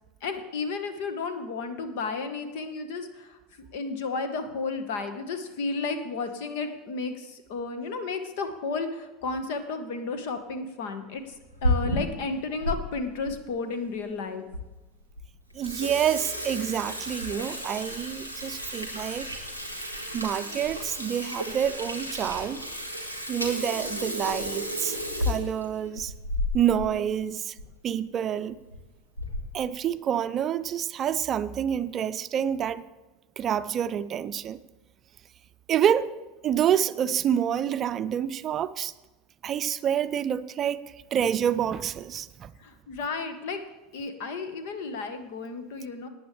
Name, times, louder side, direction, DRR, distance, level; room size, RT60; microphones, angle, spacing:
voice 1, 0.2-3.4 3.7-11.3 11.6-14.4 42.6-43.6 43.9-46.1, left 4 dB, 60° left, 9 dB, 1.3 m, -33 dB
Water tap faucet / Sink (filling or washing), 11.3-12.8 13.3-13.4 14.1-14.2 14.5-14.6 15.0-15.2 15.5-26.9 27.2-27.3 27.6-27.7 28.5-28.8 29.2-29.6, left 1 dB, 90° left, 1.6 m, -32 dB
voice 2, 15.5-19.3 20.1-22.6 23.3-25.0 25.2-26.1 26.5-27.5 27.8-28.6 29.5-32.8 33.4-34.6 35.7-36.1 36.4-38.9 39.4-42.5, right 9 dB, 35° right, 14 dB, 0.5 m, -27 dB
18.5 x 9.2 x 3.3 m, 1.1 s
figure-of-eight pair, 75°, 0 cm